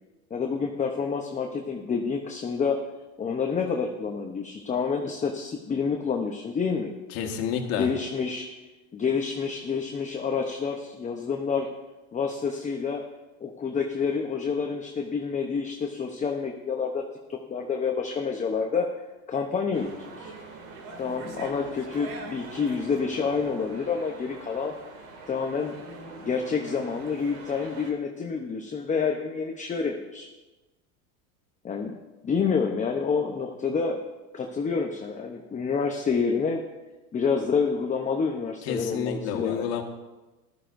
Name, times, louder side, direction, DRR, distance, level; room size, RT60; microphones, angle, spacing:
voice 1, 0.3-2.8 3.2-6.9 7.7-8.5 8.9-11.7 12.1-13.0 13.4-17.0 17.3-18.9 19.3-20.3 21.0-24.7 25.3-25.7 26.2-30.3 31.6-31.9 32.2-34.0 34.3-36.6 37.1-39.8, left 5 dB, 15° left, 2 dB, 0.8 m, -28 dB
voice 2, 7.1-7.9 38.6-39.8, left 8 dB, 55° left, 4 dB, 1.7 m, -29 dB
sound 1, 19.7-27.9, right 3 dB, 65° right, 2.7 m, -43 dB
14.0 x 12.5 x 2.6 m, 1.1 s
supercardioid pair, 115°, 44 cm